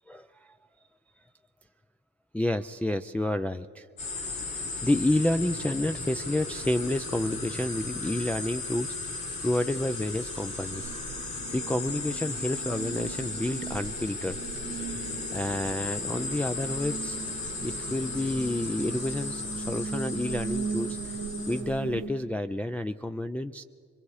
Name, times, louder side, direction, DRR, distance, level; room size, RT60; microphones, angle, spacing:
voice 1, 2.3-3.9 4.5-11.0 11.5-14.4 14.8-15.0 15.3-21.0 21.5-23.6, left 1 dB, 5° left, 6 dB, 0.4 m, -30 dB
sound 1, 4.0-21.6, left 3 dB, 85° left, 5.5 m, -36 dB
sound 2, 10.7-22.1, right 5 dB, 85° right, 1.6 m, -38 dB
25.5 x 21.5 x 4.8 m, 2.3 s
cardioid pair, 90°, 30 cm